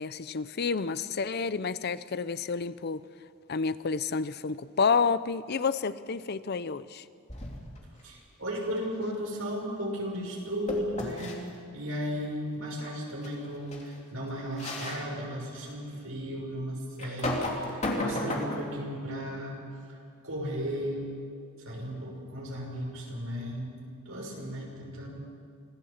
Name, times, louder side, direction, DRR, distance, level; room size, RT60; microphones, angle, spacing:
voice 1, 0.0-3.0 3.5-7.0, left 5 dB, 50° left, 15 dB, 0.6 m, -29 dB
sound 1, 7.3-7.8 10.7-11.4 13.2-13.3 13.7-13.9 14.6-15.0 15.6-15.7 17.0-18.7, left 1 dB, 30° left, 3.0 m, -32 dB
voice 2, 8.0-11.4 11.7-19.6 19.9-20.0 20.2-21.0 21.6-23.7 24.1-25.1, equal, 70° right, -1 dB, 5.9 m, -35 dB
25.5 x 16.5 x 7.3 m, 2.4 s
head